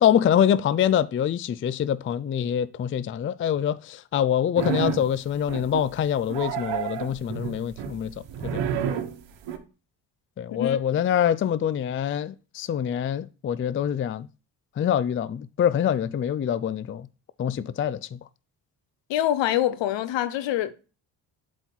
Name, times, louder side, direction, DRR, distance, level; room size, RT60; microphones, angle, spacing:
voice 1, 0.0-8.1 8.4-8.6 10.4-14.3 14.8-17.1 17.4-18.2, left 9 dB, 30° left, 0.4 m, -25 dB
sound 1, 4.6-5.1 5.5-6.0 6.3-9.6, right 9 dB, 75° right, 1.2 m, -30 dB
voice 2, 19.1-20.7, left 12 dB, 75° left, 1.0 m, -25 dB
7.8 x 4.4 x 4.5 m
supercardioid pair, 60°, 45 cm